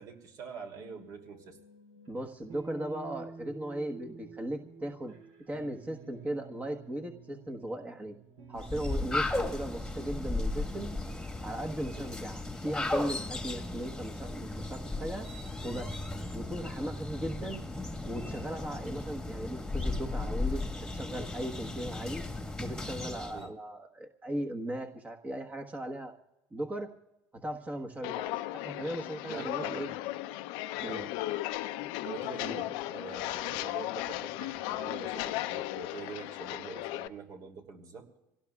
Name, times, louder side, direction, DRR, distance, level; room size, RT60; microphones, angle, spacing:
voice 1, 0.0-1.6 12.0-12.1 23.3-23.5 29.3-30.0 30.8-31.1 32.0-38.1, right 5 dB, 50° right, 4 dB, 2.8 m, -45 dB
sound 1, 0.7-10.6, right 4 dB, 80° right, 3.6 m, -50 dB
voice 2, 2.1-5.1 5.5-8.1 8.5-10.9 11.4-15.3 15.6-16.0 16.3-17.6 18.0-20.7 20.9-22.2 22.6-26.1 26.5-26.9 27.4-29.9 30.8-31.1 32.4-32.6, right 1 dB, 20° right, 4 dB, 1.3 m, -37 dB
sound 2, 8.6-23.5, left 2 dB, 5° left, 1.6 m, -36 dB
Walk footsteps, 28.0-37.1, left 16 dB, 75° left, 0.6 m, -36 dB
27.0 x 17.5 x 2.4 m, 0.97 s
supercardioid pair, 110°, 8 cm